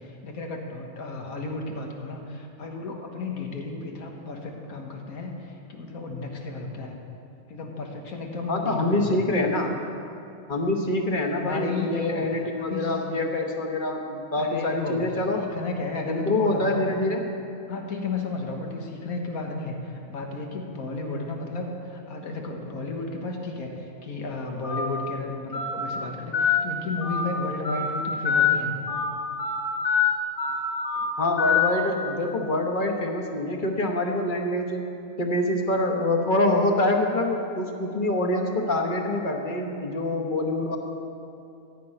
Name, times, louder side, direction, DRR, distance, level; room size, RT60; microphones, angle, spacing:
voice 1, 0.0-7.0 7.5-9.2 11.4-12.3 12.6-12.9 14.4-16.8 17.7-28.7, left 3 dB, 90° left, 2 dB, 1.8 m, -33 dB
voice 2, 8.5-9.8 10.5-15.5 16.1-17.3 31.2-34.8 35.2-40.8, left 1 dB, 40° left, 2 dB, 1.3 m, -25 dB
Telephone, 24.6-24.8 25.5-25.7 26.3-26.5 27.0-27.2 27.6-27.9 28.2-28.5 28.9-29.0 29.4-29.6 29.8-30.0 30.4-30.5 30.8-31.1 31.4-31.6, left 7 dB, 65° left, 3.4 m, -24 dB
14.0 x 6.0 x 9.0 m, 2.7 s
omnidirectional pair, 1.5 m